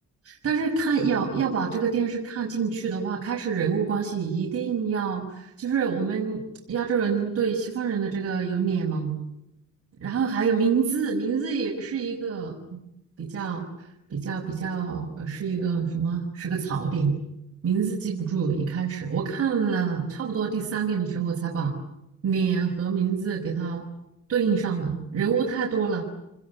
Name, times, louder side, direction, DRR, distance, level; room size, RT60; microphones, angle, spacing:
voice 1, 0.2-9.2 10.0-12.6 13.2-13.7 14.1-17.2 17.6-21.7 22.2-23.8 24.3-26.0, right 6 dB, 50° right, 0 dB, 6.1 m, -26 dB
29.5 x 21.0 x 9.7 m, 0.84 s
cardioid pair, 90°, 30 cm